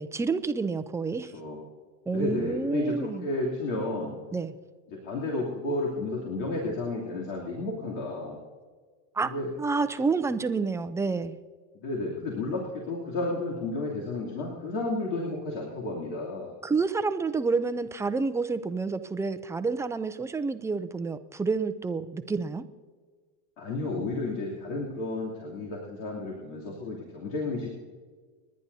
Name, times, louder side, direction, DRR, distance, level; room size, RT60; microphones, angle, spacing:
voice 1, 0.0-1.3 2.1-3.3 4.3-4.5 9.1-9.3 9.6-11.4 16.6-22.6, right 4 dB, 5° right, 10 dB, 0.4 m, -29 dB
voice 2, 2.1-4.2 4.9-8.4 9.3-9.5 11.7-16.5 23.6-27.7, left 2 dB, 70° left, -4 dB, 3.1 m, -32 dB
30.0 x 10.5 x 2.8 m, 1.5 s
supercardioid pair, 125°, 42 cm